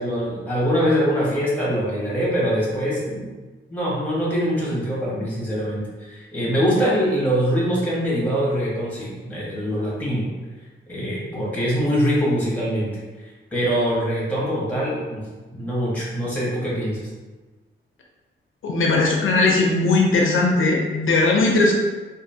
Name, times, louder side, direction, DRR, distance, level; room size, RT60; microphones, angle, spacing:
voice 1, 0.0-3.3 3.7-10.3 10.9-12.9 13.2-15.2 15.5-17.0, equal, 5° left, -6 dB, 0.9 m, -23 dB
voice 2, 18.6-21.7, left 3 dB, 75° left, 0 dB, 0.5 m, -18 dB
2.9 x 2.4 x 2.6 m, 1.3 s
wide cardioid pair, 160°, 21 cm